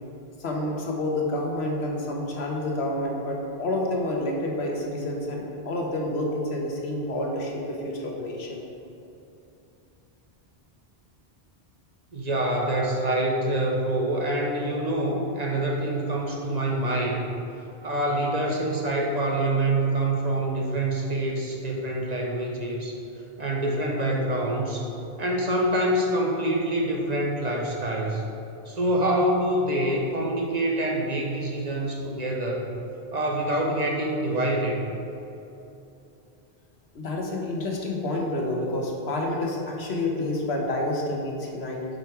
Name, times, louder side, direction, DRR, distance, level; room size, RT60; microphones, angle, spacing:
voice 1, 0.4-8.6 36.9-41.9, left 1 dB, 90° left, -1 dB, 1.4 m, -29 dB
voice 2, 12.1-17.3 17.8-23.0 23.4-24.9 25.2-28.2 28.7-32.7 33.1-34.8, right 1 dB, 45° right, -1 dB, 1.0 m, -26 dB
7.6 x 5.2 x 4.6 m, 2.9 s
omnidirectional pair, 1.1 m